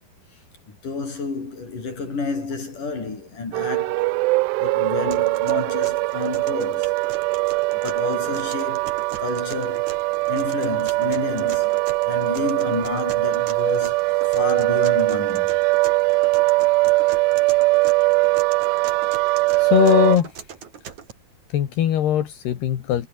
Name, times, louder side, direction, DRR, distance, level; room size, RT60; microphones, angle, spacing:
voice 1, 0.7-4.1 4.6-6.9 7.8-9.9 10.3-15.5, left 4 dB, 50° left, 8.6 m, -30 dB
sound 1, 3.5-20.2, right 23 dB, 85° right, 2.7 m, -21 dB
sound 2, 5.1-21.1, right 7 dB, 50° right, 3.5 m, -41 dB
voice 2, 19.6-20.5 21.5-23.1, left 11 dB, 75° left, 4.1 m, -20 dB
omnidirectional pair, 4.8 m